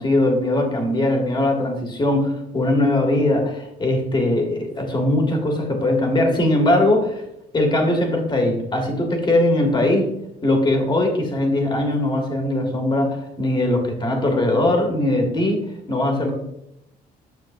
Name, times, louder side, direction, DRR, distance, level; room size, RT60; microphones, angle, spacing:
voice 1, 0.0-7.2 7.5-10.1 10.4-16.3, left 1 dB, 25° left, 3 dB, 2.2 m, -20 dB
9.5 x 6.6 x 2.7 m, 0.81 s
cardioid pair, 110°, 17 cm